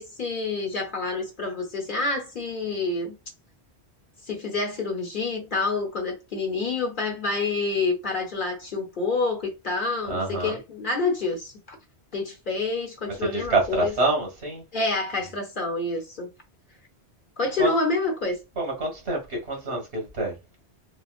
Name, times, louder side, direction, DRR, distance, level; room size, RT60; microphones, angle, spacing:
voice 1, 0.0-3.1 4.3-11.8 12.1-13.9 14.7-16.3 17.4-18.4, left 3 dB, 50° left, 1.1 m, -28 dB
voice 2, 10.1-10.6 13.2-14.6 17.6-17.7 18.6-20.3, right 2 dB, 75° right, 1.9 m, -26 dB
4.0 x 2.3 x 2.4 m
omnidirectional pair, 1.1 m